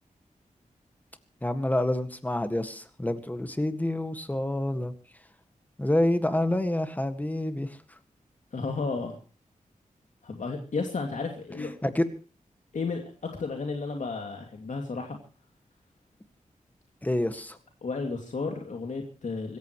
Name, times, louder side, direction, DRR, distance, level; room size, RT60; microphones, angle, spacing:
voice 1, 1.4-4.9 5.8-7.8 11.6-12.0 17.0-17.6, left 1 dB, 10° left, 9 dB, 1.8 m, -28 dB
voice 2, 8.5-9.1 10.2-11.7 12.7-15.2 17.8-19.6, left 4 dB, 65° left, 2 dB, 2.6 m, -33 dB
25.5 x 14.5 x 3.1 m, 0.37 s
wide cardioid pair, 130°, 14 cm